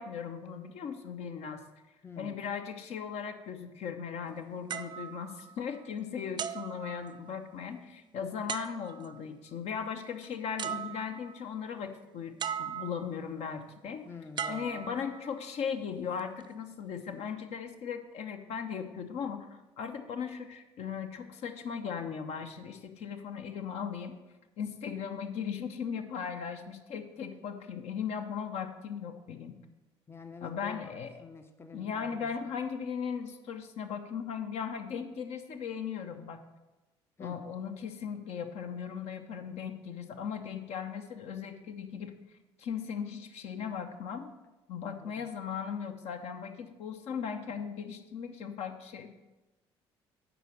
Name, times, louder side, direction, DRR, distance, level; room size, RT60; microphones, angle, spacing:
voice 1, 0.0-1.6 2.2-14.1 14.5-24.1 24.6-29.6 30.4-31.1 31.7-36.4 37.2-42.1 42.6-44.3 44.7-49.1, left 7 dB, 50° left, 7 dB, 0.8 m, -38 dB
voice 2, 2.0-2.4 14.0-14.8 30.1-30.9 31.2-32.3 37.2-37.4 45.0-45.1, left 4 dB, 15° left, 8 dB, 0.6 m, -47 dB
sound 1, 4.7-5.9 6.4-7.5 8.5-9.2 10.2-10.3 10.6-11.4 12.4-13.2 14.4-15.5 16.2-16.4, right 8 dB, 35° right, 0.4 m, -39 dB
7.9 x 5.0 x 6.4 m, 1.1 s
figure-of-eight pair, 50°, 14 cm